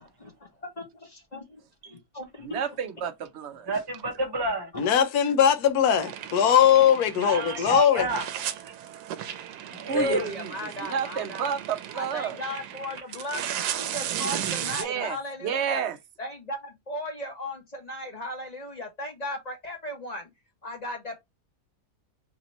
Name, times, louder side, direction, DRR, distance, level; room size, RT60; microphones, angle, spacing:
voice 1, 0.0-2.6 4.7-4.8 7.6-7.7 9.9-11.6 11.9-15.8 16.2-20.3 20.6-21.2, left 1 dB, 25° left, 1.3 m, -37 dB
voice 2, 2.4-3.7 9.9-10.5 10.9-12.4 14.8-15.2 15.4-15.9, right 8 dB, 60° right, 0.8 m, -30 dB
voice 3, 3.7-4.7 7.2-8.7 9.2-9.4 9.7-10.3, right 1 dB, 25° right, 0.5 m, -29 dB
voice 4, 4.8-8.1, left 9 dB, 70° left, 1.2 m, -20 dB
sound 1, 6.0-7.8 8.1-14.8, right 10 dB, 85° right, 1.2 m, -35 dB
3.4 x 2.8 x 4.1 m
omnidirectional pair, 1.7 m